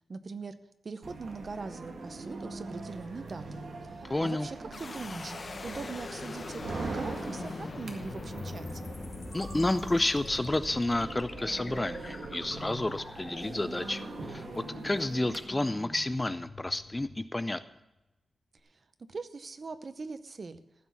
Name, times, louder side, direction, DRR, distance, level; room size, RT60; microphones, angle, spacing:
voice 1, 0.1-0.5 0.8-5.3 5.6-8.9 18.7-18.8 19.1-20.6, right 4 dB, 45° right, 11 dB, 0.8 m, -41 dB
sound 1, 1.0-15.4, right 3 dB, 80° right, 1.9 m, -42 dB
voice 2, 4.1-4.5 9.3-17.6, left 2 dB, 15° left, 12 dB, 0.4 m, -30 dB
sound 2, 4.7-17.7, left 3 dB, 40° left, 0.8 m, -43 dB
14.5 x 6.2 x 7.1 m, 0.94 s
wide cardioid pair, 120°, 0 cm